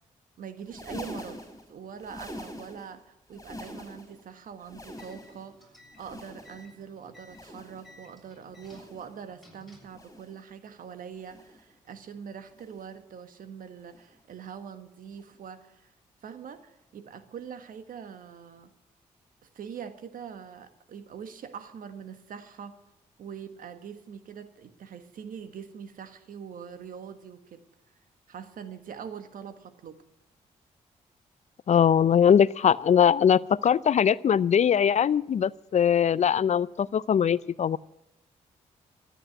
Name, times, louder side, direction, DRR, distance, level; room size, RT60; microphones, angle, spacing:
voice 1, 0.4-1.4 1.7-5.7 6.0-15.9 16.2-18.7 19.4-22.8 23.2-27.6 28.3-30.0, right 7 dB, 70° right, 10 dB, 1.6 m, -43 dB
sound 1, 0.6-3.0 3.3-4.2 4.6-5.5 5.9-6.8 7.2-8.0 8.5-9.2 9.9-10.4 11.2-11.7 12.5-13.0 13.9-14.2 15.2-15.4 16.5-16.6, left 1 dB, 20° left, 5.1 m, -45 dB
sound 2, 4.8-10.0, left 1 dB, ahead, 7.5 m, -56 dB
voice 2, 31.7-37.8, left 8 dB, 55° left, 20 dB, 0.5 m, -21 dB
13.5 x 10.0 x 9.0 m, 0.84 s
supercardioid pair, 55°, 15 cm